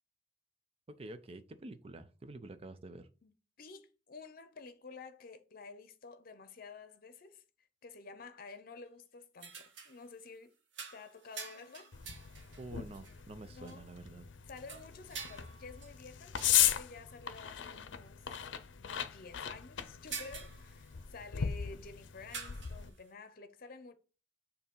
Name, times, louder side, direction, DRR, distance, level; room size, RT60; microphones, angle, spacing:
voice 1, 0.9-3.1 12.6-14.3, right 2 dB, 35° right, 0.5 m, -48 dB
voice 2, 3.2-7.4 7.8-10.5 10.9-11.9 13.5-13.9 14.5-18.2 18.8-24.0, left 4 dB, 55° left, 0.7 m, -51 dB
sound 1, 9.4-10.0 10.7-13.2 13.7-13.8 14.6-16.7 17.3-17.4 17.7-17.8 19.8-21.3 22.3-23.0, right 5 dB, 80° right, 1.3 m, -48 dB
sound 2, 11.9-22.9, left 10 dB, 85° left, 0.6 m, -37 dB
6.7 x 2.8 x 5.4 m
head